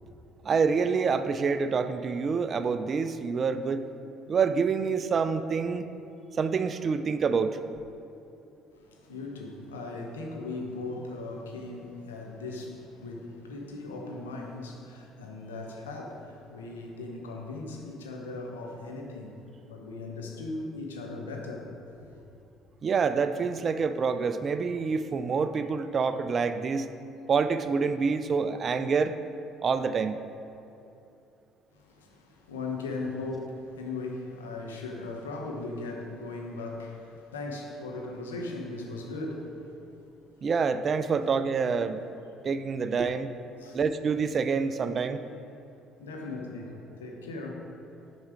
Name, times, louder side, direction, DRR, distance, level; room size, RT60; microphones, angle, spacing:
voice 1, 0.4-3.8 4.3-5.9 6.3-7.6 22.8-26.9 27.3-29.2 29.6-30.2 40.4-42.0 42.4-43.3 43.7-45.2, right 5 dB, 45° right, 0.4 m, -27 dB
voice 2, 8.7-19.4 19.7-22.2 31.7-40.2 43.0-43.1 43.6-43.8 46.0-47.7, left 2 dB, 90° left, 0.8 m, -38 dB
6.2 x 4.9 x 4.8 m
hypercardioid pair, 55°, 0 cm